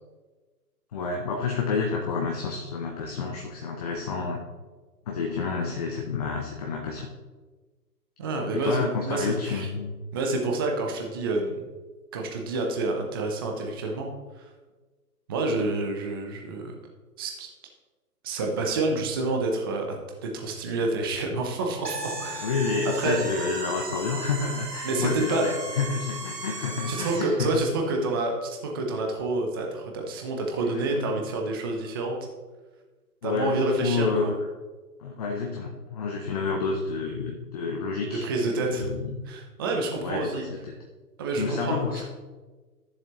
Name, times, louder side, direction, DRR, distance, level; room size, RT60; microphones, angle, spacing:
voice 1, 0.9-4.4 5.1-7.1 8.5-9.9 22.4-27.5 30.6-31.1 33.2-34.3 35.0-39.2 40.0-40.6 41.4-42.0, left 5 dB, 25° left, 1 dB, 0.6 m, -29 dB
voice 2, 8.2-9.7 10.1-11.6 12.1-14.5 15.3-16.7 17.2-17.5 18.2-20.0 20.2-22.5 22.8-23.2 24.8-25.6 26.9-32.2 33.2-34.3 38.0-38.9 39.3-40.4 41.2-42.0, right 2 dB, 15° right, 1 dB, 0.6 m, -28 dB
sound 1, 21.8-27.4, right 3 dB, 80° right, 1.8 m, -36 dB
12.5 x 7.3 x 3.0 m, 1.3 s
figure-of-eight pair, 140°, 48 cm